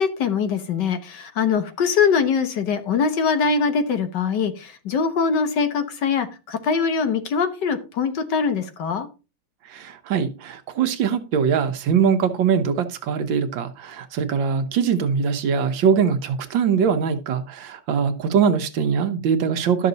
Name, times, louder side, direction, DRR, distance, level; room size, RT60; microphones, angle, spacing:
voice 1, 0.0-9.1, left 5 dB, 65° left, 9 dB, 1.7 m, -22 dB
voice 2, 9.7-19.9, right 6 dB, 75° right, 9 dB, 1.7 m, -22 dB
12.0 x 6.5 x 4.0 m, 0.30 s
omnidirectional pair, 2.1 m